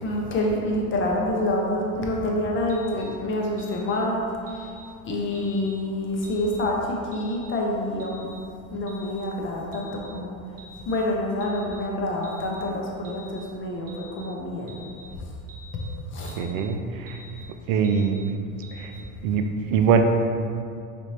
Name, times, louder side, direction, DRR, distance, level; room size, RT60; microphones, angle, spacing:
voice 1, 0.0-4.3 4.5-4.7 5.0-8.3 8.7-10.3 10.9-14.8 15.2-15.3 16.1-16.4, left 1 dB, 30° left, -1 dB, 0.5 m, -27 dB
sound 1, 2.7-3.0 3.6-3.9 4.5-4.7 5.3-5.6 6.2-6.5 7.1-7.4 8.0-8.3 8.9-9.2 9.7-10.0 10.6-10.9 11.4-11.7 12.2-12.5 13.0-13.3 13.9-14.2 14.7-15.0 15.5-15.8 16.3-16.6 17.1-17.3 17.8-18.1 18.6-18.9, left 1 dB, 20° right, 0.5 m, -47 dB
voice 2, 16.4-17.2 17.7-18.2 18.7-18.9 19.2-20.0, right 6 dB, 70° right, 6 dB, 0.5 m, -23 dB
5.0 x 2.8 x 3.1 m, 2.4 s
supercardioid pair, 125°, 44 cm